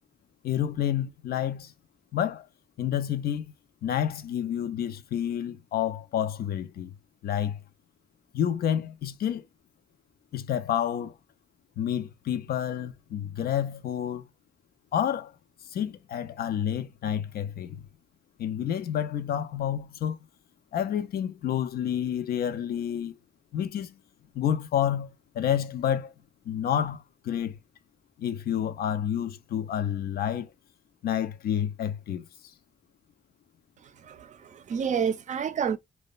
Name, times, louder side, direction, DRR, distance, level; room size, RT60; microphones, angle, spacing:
voice 1, 0.4-1.7 2.1-2.5 2.8-3.5 3.8-7.0 7.2-7.6 8.3-9.5 10.3-11.2 11.8-14.3 14.9-15.3 15.7-17.8 18.4-20.2 20.7-23.2 23.5-24.0 24.3-26.1 26.5-27.6 28.2-30.5 31.0-32.5, left 9 dB, 80° left, 0.4 m, -29 dB
voice 2, 34.0-35.8, right 7 dB, 50° right, 0.4 m, -29 dB
2.9 x 2.1 x 2.3 m
wide cardioid pair, 145°, 16 cm